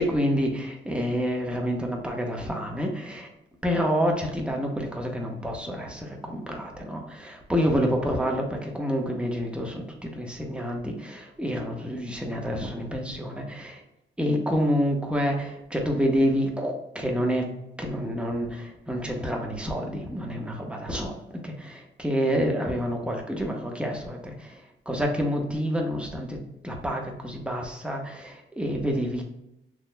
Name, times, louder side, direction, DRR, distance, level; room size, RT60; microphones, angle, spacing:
voice 1, 0.0-3.3 3.6-13.8 14.2-17.5 17.8-29.2, equal, 5° right, 0 dB, 1.1 m, -28 dB
6.3 x 3.0 x 2.3 m, 0.86 s
cardioid pair, 90°, 20 cm